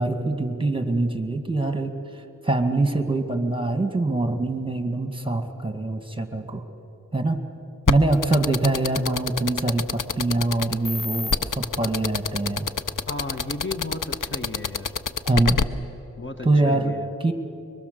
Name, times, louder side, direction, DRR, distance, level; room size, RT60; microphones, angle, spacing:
voice 1, 0.0-1.9 2.4-6.6 7.1-7.4 7.9-12.7 15.3-15.6 16.4-16.9 17.2-17.3, right 2 dB, 15° right, 6 dB, 1.9 m, -24 dB
sound 1, 7.9-15.6, left 5 dB, 65° left, 0.7 m, -25 dB
voice 2, 13.1-14.9 16.2-17.1, left 2 dB, 35° left, 5 dB, 1.4 m, -34 dB
24.0 x 23.5 x 6.8 m, 2.8 s
wide cardioid pair, 50°, 34 cm